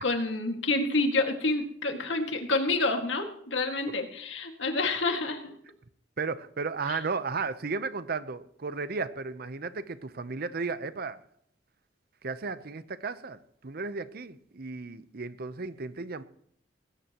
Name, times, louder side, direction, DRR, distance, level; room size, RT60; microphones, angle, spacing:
voice 1, 0.0-5.5 6.9-7.0, left 2 dB, 85° left, 4 dB, 2.1 m, -28 dB
voice 2, 6.2-11.2 12.2-16.2, right 4 dB, 55° right, 13 dB, 0.8 m, -34 dB
19.5 x 17.0 x 3.0 m, 0.65 s
head